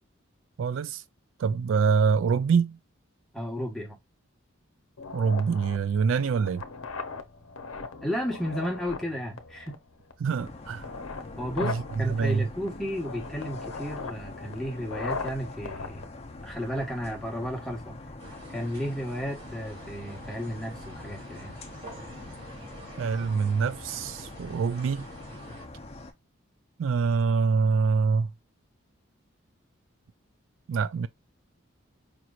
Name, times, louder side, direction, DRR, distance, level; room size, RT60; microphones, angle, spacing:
voice 1, 0.6-1.0 1.4-2.8 5.1-6.6 10.2-10.8 11.6-12.5 23.0-25.1 26.8-28.3 30.7-31.1, right 5 dB, 70° right, 0.3 m, -25 dB
voice 2, 3.3-4.0 8.0-9.8 11.3-16.0 16.4-18.0 18.5-21.5, equal, ahead, 1.2 m, -33 dB
sound 1, 5.0-17.0, left 4 dB, 90° left, 0.7 m, -39 dB
sound 2, 10.4-26.1, left 2 dB, 30° left, 0.6 m, -44 dB
sound 3, 18.2-25.6, right 2 dB, 45° right, 2.2 m, -48 dB
5.2 x 3.0 x 2.4 m
head